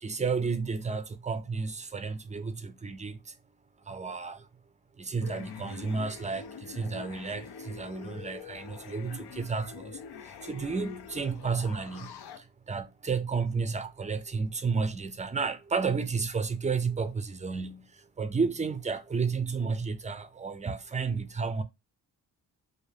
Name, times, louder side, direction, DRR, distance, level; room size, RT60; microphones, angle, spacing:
voice 1, 0.0-3.2 3.9-4.4 5.0-10.0 10.4-12.2 12.7-17.9 18.2-21.6, right 5 dB, 15° right, 0.5 m, -32 dB
sound 1, 5.2-12.4, left 7 dB, 65° left, 0.6 m, -45 dB
2.6 x 2.1 x 3.2 m
cardioid pair, 50°, 42 cm